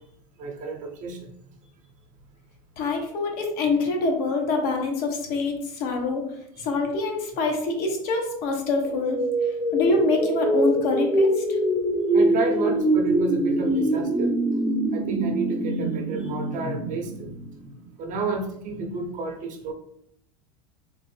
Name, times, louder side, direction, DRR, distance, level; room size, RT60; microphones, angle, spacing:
voice 1, 0.4-1.3 2.9-3.1 6.6-6.7 12.1-14.3 14.9-17.3 18.0-19.7, right 3 dB, 40° right, 3 dB, 0.7 m, -31 dB
voice 2, 2.8-6.2 6.6-9.2 9.7-11.4, left 3 dB, 55° left, 3 dB, 0.9 m, -25 dB
sound 1, 8.8-17.8, right 1 dB, ahead, 0.6 m, -24 dB
3.4 x 2.0 x 3.2 m, 0.72 s
hypercardioid pair, 100°, 20 cm